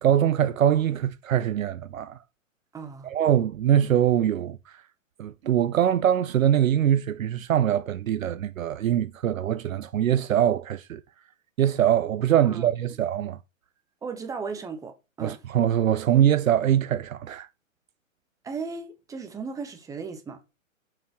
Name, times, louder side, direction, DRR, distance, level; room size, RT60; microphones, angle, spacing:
voice 1, 0.0-2.2 3.0-4.8 5.2-11.0 11.6-13.4 15.2-17.5, right 10 dB, 75° right, 0.6 m, -23 dB
voice 2, 2.7-3.1 12.4-12.7 14.0-15.4 18.4-20.4, right 5 dB, 10° right, 0.9 m, -36 dB
7.0 x 5.6 x 3.0 m
hypercardioid pair, 125°, 41 cm